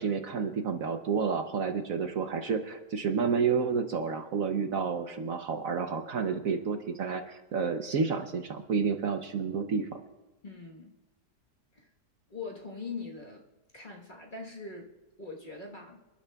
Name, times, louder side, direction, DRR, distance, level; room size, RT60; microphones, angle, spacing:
voice 1, 0.0-9.9, right 5 dB, 60° right, 6 dB, 1.1 m, -30 dB
voice 2, 10.4-10.9 11.7-11.9 12.3-13.4 13.7-16.0, left 4 dB, 30° left, -1 dB, 1.3 m, -42 dB
27.5 x 11.5 x 2.3 m, 1.2 s
omnidirectional pair, 1.8 m